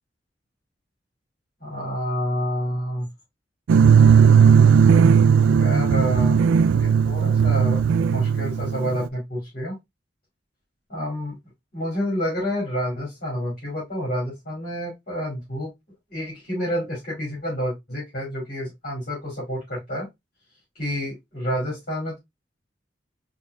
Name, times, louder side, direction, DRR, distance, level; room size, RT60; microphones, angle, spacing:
voice 1, 1.6-3.1 3.8-4.6 5.4-6.4 6.7-9.8 10.9-11.4 11.7-15.7 16.1-20.1 20.7-22.2, equal, 50° left, -6 dB, 2.5 m, -29 dB
sound 1, 3.7-9.1, right 6 dB, 85° right, 0.3 m, -16 dB
4.4 x 3.8 x 2.3 m, 0.18 s
head